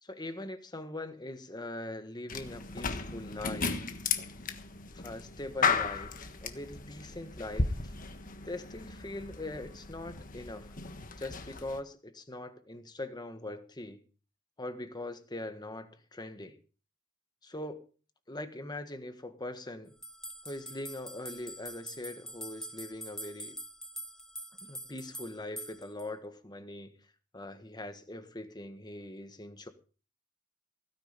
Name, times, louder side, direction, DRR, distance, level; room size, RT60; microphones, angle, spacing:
voice 1, 0.0-3.9 4.9-6.2 6.4-7.9 8.4-10.7 11.2-14.0 14.6-16.6 17.4-17.8 18.3-19.9 20.4-23.6 24.6-27.0 27.3-29.7, left 1 dB, 20° left, 1.5 m, -42 dB
sound 1, 2.3-11.8, left 4 dB, 40° left, 1.4 m, -35 dB
sound 2, 20.0-26.1, right 1 dB, ahead, 0.7 m, -44 dB
16.5 x 9.9 x 5.3 m
head